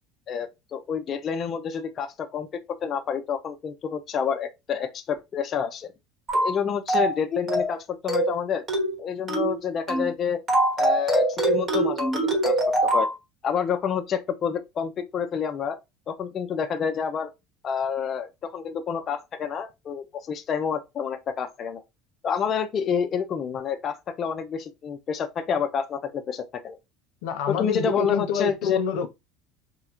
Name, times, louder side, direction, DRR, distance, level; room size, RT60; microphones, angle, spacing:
voice 1, 0.3-5.9 6.3-8.6 9.0-10.4 10.8-12.6 12.8-13.1 13.4-15.8 16.1-17.3 17.6-21.8 22.2-26.8 27.5-28.8, left 7 dB, 30° left, 0.4 m, -28 dB
sound 1, 6.3-6.6 6.9-7.2 7.5-7.8 8.1-8.4 8.7-9.0 9.3-9.6 9.9-10.1 10.5-13.1, right 1 dB, 25° right, 1.0 m, -23 dB
voice 2, 27.2-29.1, left 6 dB, 80° left, 0.6 m, -27 dB
3.6 x 2.0 x 2.9 m
cardioid pair, 150°, 0 cm